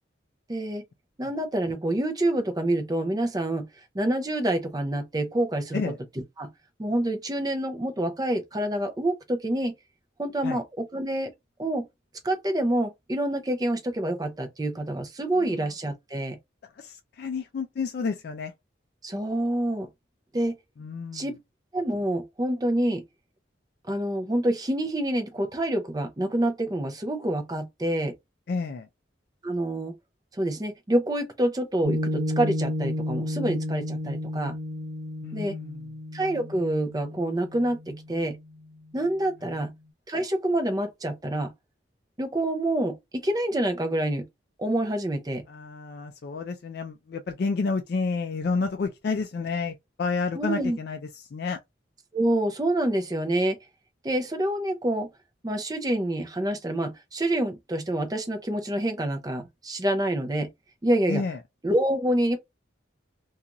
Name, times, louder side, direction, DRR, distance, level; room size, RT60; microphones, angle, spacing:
voice 1, 0.5-0.8 1.2-3.7 3.9-5.9 6.4-6.5 6.8-9.7 10.2-11.3 11.6-11.9 12.2-16.4 19.0-19.9 20.3-20.6 21.1-21.4 21.7-23.0 23.9-28.1 29.4-29.9 30.4-34.6 35.3-35.6 36.1-38.4 38.9-39.7 40.1-41.5 42.2-44.3 44.6-45.4 50.3-50.8 52.1-53.6 54.0-55.1 55.4-60.5 60.8-61.2 61.6-62.4, right 1 dB, 20° right, 0.5 m, -27 dB
voice 2, 16.8-18.5 20.8-21.2 28.5-28.9 35.2-35.8 45.5-51.0 51.3-51.6 61.1-61.4, left 4 dB, 55° left, 0.3 m, -30 dB
Piano, 31.8-38.5, left 1 dB, 55° right, 0.8 m, -32 dB
2.5 x 2.3 x 2.8 m
head